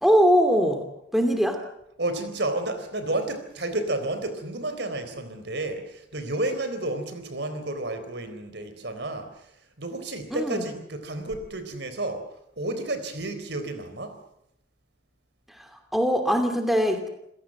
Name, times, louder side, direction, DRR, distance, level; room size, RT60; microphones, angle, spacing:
voice 1, 0.0-0.8 1.1-1.6 10.3-10.6 15.6-17.1, equal, ahead, 5 dB, 2.7 m, -22 dB
voice 2, 2.0-12.2 12.6-14.2, right 2 dB, 65° right, 9 dB, 4.0 m, -31 dB
28.0 x 17.0 x 7.8 m, 0.77 s
head